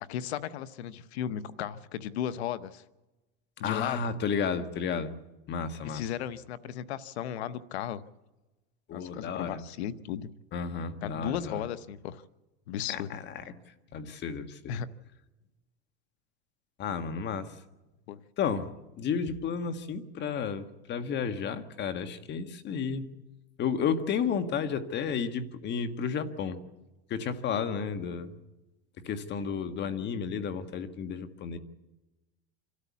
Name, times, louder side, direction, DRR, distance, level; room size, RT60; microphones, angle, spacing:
voice 1, 0.0-2.8 3.6-4.1 5.8-8.0 8.9-10.3 11.0-12.2 12.7-13.2 14.7-14.9 18.1-18.2, left 10 dB, 90° left, 14 dB, 1.0 m, -35 dB
voice 2, 3.6-5.1 5.5-6.0 8.9-9.6 10.5-11.6 12.9-13.4 13.9-14.8 16.8-17.6 18.4-23.1 23.6-26.6 27.1-28.4 29.0-31.6, left 6 dB, 35° left, 10 dB, 1.5 m, -32 dB
27.0 x 13.0 x 8.3 m, 1.1 s
supercardioid pair, 135°, 31 cm